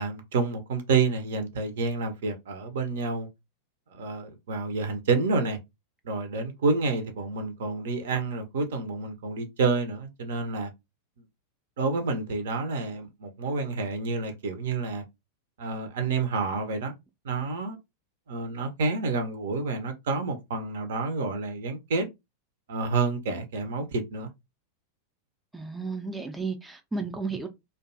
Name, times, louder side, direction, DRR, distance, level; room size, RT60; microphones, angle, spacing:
voice 1, 0.0-3.3 3.9-5.6 6.0-10.7 11.8-15.0 15.6-16.9 17.2-17.8 18.3-22.1 22.7-24.3, right 4 dB, 60° right, 0.5 m, -29 dB
voice 2, 25.5-27.5, right 4 dB, 10° right, 0.4 m, -33 dB
2.6 x 2.2 x 2.5 m
figure-of-eight pair, 90°, 0 cm